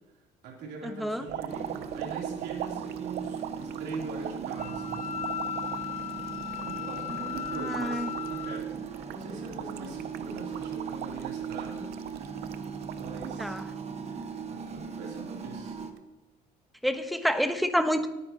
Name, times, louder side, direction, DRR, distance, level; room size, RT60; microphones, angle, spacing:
voice 1, 0.4-5.1 6.7-11.9 12.8-13.7 14.5-15.8, right 4 dB, 90° right, -2 dB, 3.2 m, -42 dB
sound 1, 1.3-13.6 14.1-14.8 15.8-16.0, right 11 dB, 70° right, 0.6 m, -41 dB
sound 2, 1.5-15.9, right 6 dB, 40° right, 1.2 m, -38 dB
Wind instrument woodwind instrument, 4.6-8.6, left 10 dB, 50° left, 0.5 m, -36 dB
voice 2, 7.6-8.1 13.4-13.6 16.8-18.1, equal, ahead, 8 dB, 1.0 m, -28 dB
20.0 x 9.4 x 2.9 m, 1.0 s
cardioid pair, 110°, 17 cm